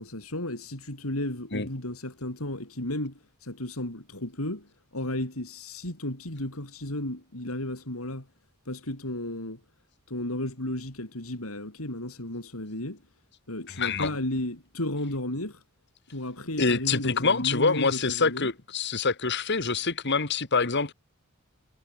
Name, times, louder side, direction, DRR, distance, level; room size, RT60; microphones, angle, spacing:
voice 1, 0.0-8.3 8.7-9.6 10.1-13.0 13.5-15.6 16.1-18.5, left 1 dB, 80° left, 5.8 m, -34 dB
voice 2, 13.8-14.2 16.6-20.9, left 4 dB, 55° left, 2.2 m, -26 dB
head